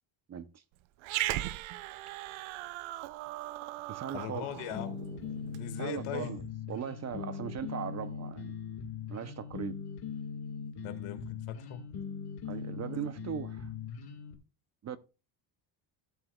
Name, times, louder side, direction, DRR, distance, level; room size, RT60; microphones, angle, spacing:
voice 1, 0.3-0.6 3.9-4.5 5.8-8.6 9.1-9.8 12.5-13.7 14.8-15.0, right 8 dB, 30° right, 0.7 m, -39 dB
Growling, 1.0-5.7, right 16 dB, 70° right, 0.8 m, -38 dB
voice 2, 4.1-5.0 5.4-6.3 10.8-11.8, left 11 dB, 90° left, 2.0 m, -40 dB
sound 1, 4.7-14.3, left 6 dB, 50° left, 1.9 m, -40 dB
16.0 x 6.9 x 2.3 m
cardioid pair, 130°, 50 cm